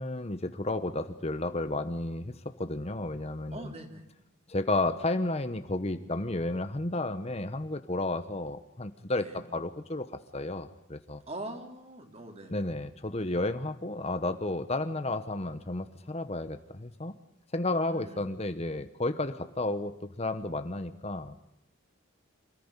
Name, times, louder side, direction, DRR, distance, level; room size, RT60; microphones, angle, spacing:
voice 1, 0.0-3.7 4.5-11.2 12.5-17.1 17.5-21.4, left 2 dB, 30° left, 10 dB, 1.0 m, -32 dB
voice 2, 3.5-4.1 9.2-9.4 11.3-12.6 17.7-18.2, right 1 dB, 30° right, 4 dB, 3.7 m, -42 dB
27.5 x 14.5 x 9.7 m, 0.84 s
head